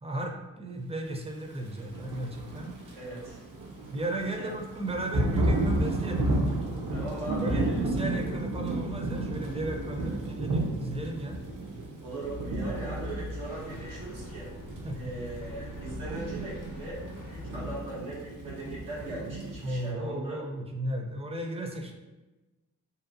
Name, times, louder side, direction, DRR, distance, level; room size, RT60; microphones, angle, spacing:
voice 1, 0.0-2.8 3.9-6.3 7.4-11.4 14.8-15.1 19.6-21.9, right 1 dB, 20° right, 2 dB, 0.5 m, -35 dB
Thunder / Rain, 1.8-19.9, right 1 dB, 65° right, 0.7 m, -33 dB
voice 2, 3.0-3.4 4.4-4.5 6.9-7.9 8.2-8.3 10.0-10.2 12.0-14.5 14.9-20.4, right 2 dB, 90° right, -8 dB, 1.0 m, -39 dB
sound 1, 12.2-17.8, left 2 dB, 65° left, 0.6 m, -42 dB
2.8 x 2.1 x 2.6 m, 1.1 s
cardioid pair, 55°, 34 cm